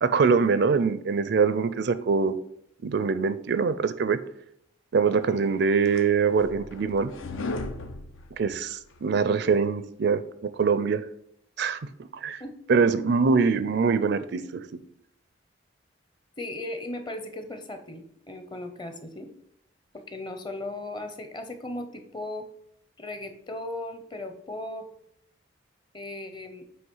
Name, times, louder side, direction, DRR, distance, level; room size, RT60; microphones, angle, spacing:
voice 1, 0.0-2.4 2.8-4.2 4.9-7.1 8.4-10.2 10.6-11.0 11.6-11.8 12.2-12.4 12.7-14.7, right 5 dB, 55° right, 13 dB, 0.4 m, -23 dB
sound 1, 5.4-9.0, left 2 dB, 80° left, 0.7 m, -37 dB
voice 2, 16.4-19.3 19.9-22.5 23.0-24.9 25.9-26.6, left 1 dB, 25° left, 7 dB, 0.7 m, -37 dB
7.8 x 3.0 x 5.5 m, 0.72 s
head